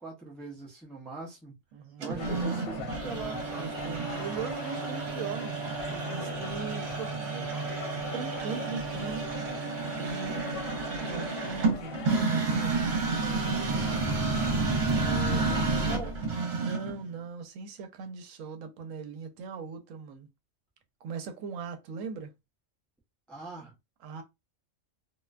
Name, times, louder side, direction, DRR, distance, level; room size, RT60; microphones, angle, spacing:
voice 1, 0.0-1.5 2.0-3.7 15.2-16.1 23.3-23.7, right 3 dB, ahead, 0.4 m, -42 dB
voice 2, 1.7-2.4 3.6-5.6 6.1-7.5 8.1-9.6 10.0-14.4 15.0-15.7 16.5-20.3 21.0-22.3 24.0-24.2, right 5 dB, 85° right, 1.0 m, -40 dB
sound 1, 2.0-17.0, right 3 dB, 60° right, 1.0 m, -31 dB
sound 2, 2.2-12.2, left 6 dB, 75° left, 0.9 m, -41 dB
2.4 x 2.1 x 2.3 m
omnidirectional pair, 1.3 m